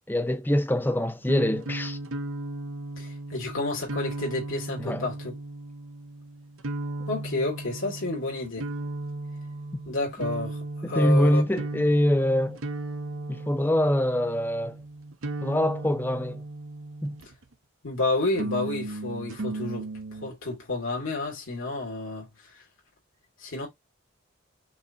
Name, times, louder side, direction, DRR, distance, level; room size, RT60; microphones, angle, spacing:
voice 1, 0.1-2.0 4.8-5.0 10.8-12.6 13.3-14.8 15.4-16.4 17.0-17.2, equal, 10° left, 0.5 m, -24 dB
sound 1, 1.2-17.5 18.3-20.3, right 2 dB, 80° right, 0.9 m, -36 dB
voice 2, 3.0-5.4 7.1-8.7 9.8-10.6 10.9-11.4 17.8-19.9 20.2-22.3 23.4-23.7, left 2 dB, 75° left, 2.7 m, -30 dB
6.0 x 2.9 x 2.5 m
head